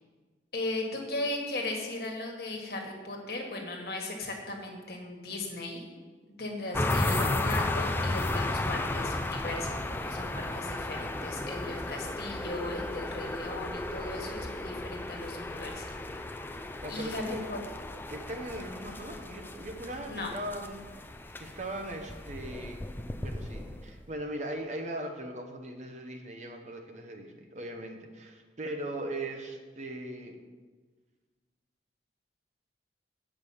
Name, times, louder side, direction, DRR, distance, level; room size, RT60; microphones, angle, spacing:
voice 1, 0.5-5.8 6.4-15.9 16.9-17.6 20.1-20.3, left 2 dB, 60° left, 1 dB, 1.6 m, -37 dB
sound 1, 6.7-24.0, left 2 dB, 10° left, 0.4 m, -34 dB
voice 2, 16.8-17.4 18.1-22.8 23.2-30.4, right 1 dB, 40° right, 3 dB, 0.9 m, -39 dB
8.1 x 5.1 x 7.2 m, 1.4 s
head